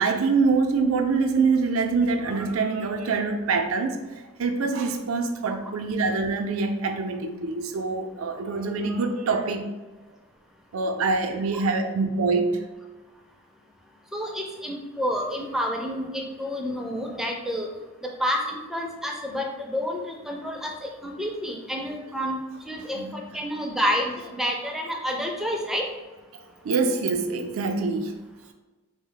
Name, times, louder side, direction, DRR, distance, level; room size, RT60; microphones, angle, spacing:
voice 1, 0.0-4.0 4.4-9.7 10.7-12.6 22.9-23.2 26.6-28.2, right 4 dB, 80° right, 0.4 m, -25 dB
voice 2, 14.1-17.7 18.2-20.0 20.3-22.4 22.7-25.9, equal, ahead, 0.4 m, -29 dB
3.4 x 2.1 x 3.8 m
head